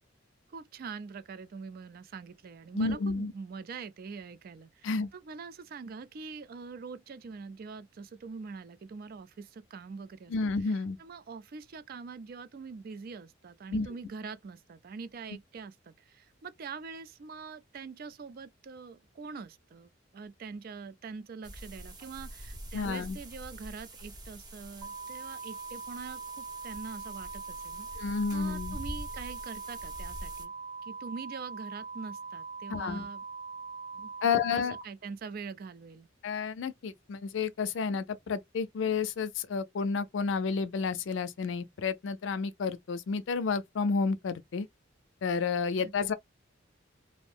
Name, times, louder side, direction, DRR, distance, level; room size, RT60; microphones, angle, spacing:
voice 1, 0.5-10.3 10.7-30.5 30.8-33.2 33.9-36.1 45.8-46.1, right 5 dB, 50° right, 0.3 m, -44 dB
voice 2, 2.7-3.3 4.8-5.1 10.3-11.0 13.7-13.9 22.7-23.2 28.0-28.8 32.7-33.1 34.2-34.8 36.2-44.7 45.2-46.1, left 5 dB, 70° left, 0.4 m, -31 dB
sound 1, 21.4-30.4, right 1 dB, 20° right, 0.7 m, -45 dB
sound 2, 24.8-34.8, right 4 dB, 85° right, 0.9 m, -42 dB
2.6 x 2.0 x 3.2 m
head